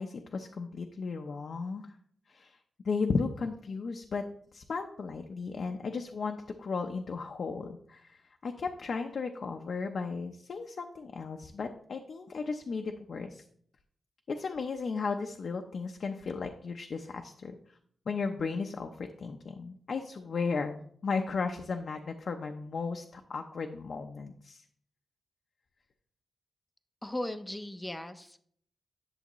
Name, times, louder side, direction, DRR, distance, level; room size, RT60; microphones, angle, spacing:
voice 1, 0.0-1.9 2.3-2.6 2.8-4.2 4.5-13.4 14.3-17.5 18.1-24.6, left 4 dB, 55° left, 4 dB, 0.6 m, -35 dB
voice 2, 27.0-28.4, left 1 dB, 10° left, 10 dB, 0.6 m, -37 dB
10.5 x 7.1 x 3.0 m, 0.63 s
wide cardioid pair, 135°, 0 cm